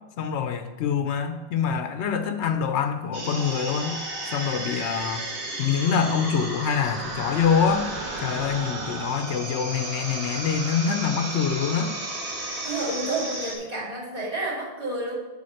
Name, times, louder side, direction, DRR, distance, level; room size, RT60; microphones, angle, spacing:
voice 1, 0.2-4.0 4.3-5.3 5.6-7.9 8.2-11.9, left 7 dB, 80° left, 8 dB, 0.9 m, -25 dB
sound 1, 3.1-13.6, right 2 dB, 75° right, 1.6 m, -33 dB
voice 2, 12.6-15.1, right 2 dB, 35° right, -8 dB, 2.5 m, -30 dB
7.7 x 3.6 x 6.4 m, 1.2 s
omnidirectional pair, 1.1 m